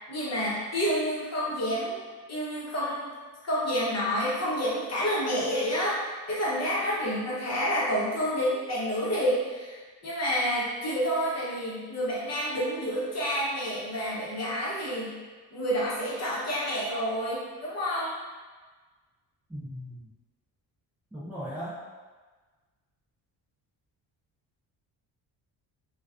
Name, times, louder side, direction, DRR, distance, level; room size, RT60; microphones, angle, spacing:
voice 1, 0.1-2.0 2.3-3.1 3.4-15.2 15.5-18.2, equal, 35° left, -7 dB, 0.9 m, -29 dB
voice 2, 19.5-20.0 21.1-21.8, equal, 5° right, -10 dB, 0.4 m, -37 dB
2.3 x 2.2 x 2.4 m, 1.4 s
cardioid pair, 90°, 43 cm